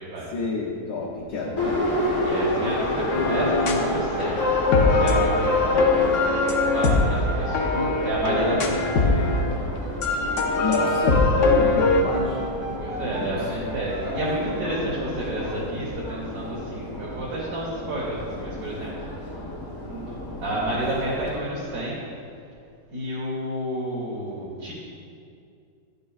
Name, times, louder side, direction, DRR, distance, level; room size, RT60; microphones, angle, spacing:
voice 1, 0.3-2.0 10.6-12.5 13.0-13.3 14.1-14.2, left 4 dB, 80° left, -6 dB, 1.4 m, -30 dB
sound 1, 1.4-15.5, left 1 dB, 45° right, 0.9 m, -36 dB
Subway metro underground, 1.6-21.4, left 1 dB, 20° left, 0.6 m, -31 dB
voice 2, 2.2-4.4 4.9-8.8 12.7-18.9 19.8-22.0 22.9-24.7, right 1 dB, 75° right, -7 dB, 1.7 m, -30 dB
sound 2, 3.1-3.9 4.2-9.5 10.0-12.0, left 3 dB, 60° left, 0.9 m, -21 dB
11.0 x 5.2 x 2.4 m, 2.4 s
omnidirectional pair, 1.7 m